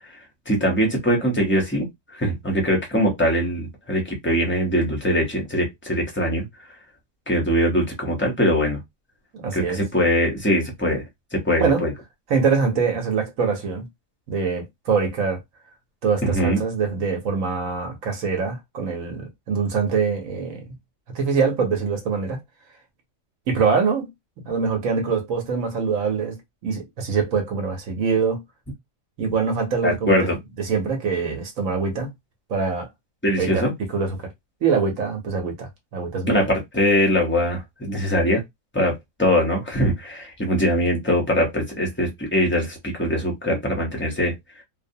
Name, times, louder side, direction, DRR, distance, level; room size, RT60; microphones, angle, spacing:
voice 1, 0.5-6.4 7.3-8.8 9.5-11.0 11.3-11.9 16.2-16.6 29.8-30.4 33.2-33.7 36.3-38.4 38.7-44.3, equal, 15° left, 0.4 m, -22 dB
voice 2, 9.3-9.8 11.6-11.8 12.3-13.9 14.3-15.4 16.0-20.7 21.1-22.4 23.5-24.1 24.4-26.4 26.6-28.4 29.2-30.3 30.6-32.1 32.5-32.9 33.4-33.6 33.9-34.3 34.6-36.4, right 5 dB, 65° right, 1.0 m, -24 dB
2.6 x 2.1 x 2.6 m
omnidirectional pair, 1.7 m